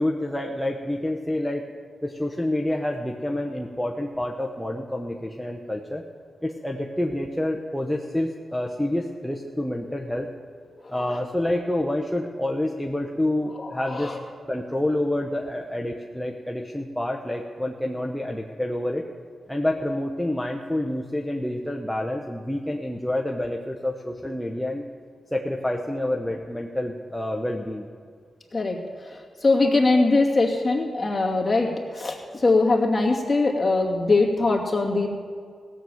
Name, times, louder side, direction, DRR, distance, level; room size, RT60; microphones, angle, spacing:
voice 1, 0.0-1.6 2.0-6.0 6.4-10.3 10.9-14.2 14.5-19.1 19.5-24.8 25.3-27.9, left 1 dB, ahead, 0 dB, 0.9 m, -28 dB
voice 2, 13.6-14.2 28.5-35.1, left 3 dB, 25° left, -2 dB, 2.5 m, -22 dB
17.0 x 7.2 x 7.8 m, 2.1 s
cardioid pair, 80°, 0 cm